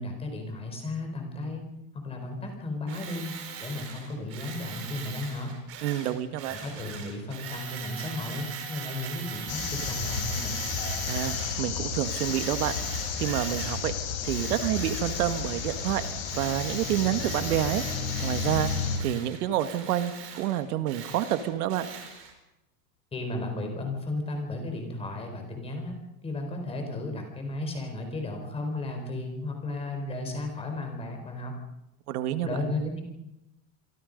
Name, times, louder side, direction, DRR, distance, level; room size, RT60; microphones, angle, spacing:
voice 1, 0.0-1.6 2.0-3.3 3.6-5.5 6.5-10.6 23.1-26.0 26.2-31.5 32.4-33.0, left 2 dB, 10° left, 3 dB, 4.4 m, -34 dB
Tools, 2.9-11.7 12.0-13.9 14.2-22.3, right 7 dB, 30° right, 4.5 m, -41 dB
voice 2, 5.8-6.6 11.1-12.7 13.2-13.9 14.2-16.1 16.4-17.8 18.2-18.7 19.0-21.9 32.1-32.6, right 12 dB, 65° right, 10 dB, 1.9 m, -28 dB
sound 1, 9.5-19.0, left 5 dB, 30° left, 4.8 m, -32 dB
28.0 x 23.0 x 5.3 m, 0.90 s
supercardioid pair, 180°, 49 cm